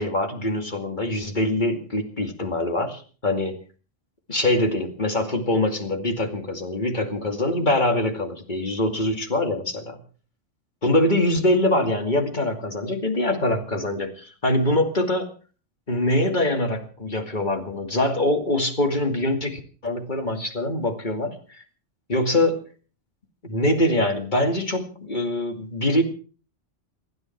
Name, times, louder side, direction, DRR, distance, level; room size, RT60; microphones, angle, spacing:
voice 1, 0.0-3.6 4.3-10.0 10.8-15.3 15.9-21.6 22.1-22.6 23.4-26.0, left 1 dB, 40° left, 5 dB, 2.6 m, -24 dB
28.5 x 10.0 x 4.6 m, 0.39 s
omnidirectional pair, 1.2 m